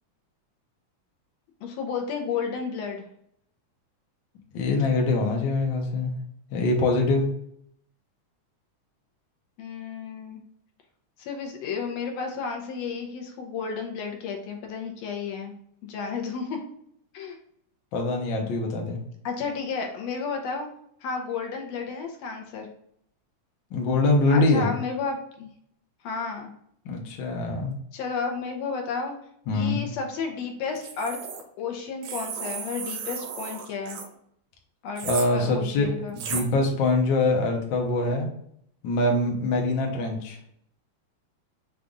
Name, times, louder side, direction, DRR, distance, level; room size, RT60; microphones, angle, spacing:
voice 1, 1.6-3.0 9.6-10.4 11.2-15.5 15.8-16.6 17.1-17.4 19.2-20.7 21.0-22.7 24.3-25.5 26.0-26.5 27.9-29.2 29.5-31.2 31.6-34.0 34.8-36.2, left 5 dB, 75° left, 2 dB, 1.8 m, -32 dB
voice 2, 4.5-6.2 6.5-7.3 17.9-19.0 23.7-24.7 26.8-27.8 29.5-29.8 35.0-35.9 36.1-38.3 38.8-40.4, left 2 dB, 90° left, 0 dB, 1.0 m, -24 dB
sound 1, 30.8-31.4 32.0-34.1 35.0-35.3 36.2-36.5, right 7 dB, 75° right, 1.7 m, -34 dB
5.3 x 2.4 x 3.7 m, 0.69 s
omnidirectional pair, 3.4 m